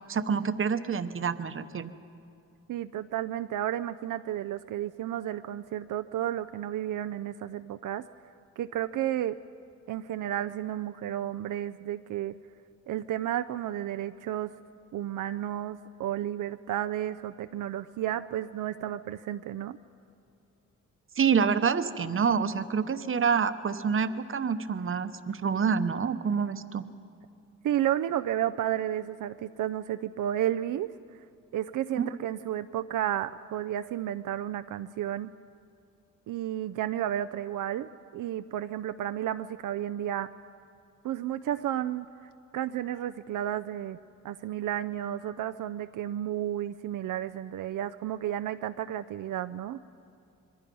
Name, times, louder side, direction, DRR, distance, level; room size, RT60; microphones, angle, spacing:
voice 1, 0.1-1.9 21.2-26.8 32.0-32.1, right 6 dB, 40° right, 11 dB, 1.0 m, -27 dB
voice 2, 2.7-8.0 8.6-9.4 9.9-12.3 12.9-14.5 14.9-19.8 27.6-30.9 31.5-35.3 36.3-40.3 41.0-42.1 42.5-44.0 44.2-49.8, right 11 dB, 75° right, 10 dB, 0.5 m, -32 dB
26.5 x 22.0 x 5.4 m, 2.5 s
cardioid pair, 80°, 32 cm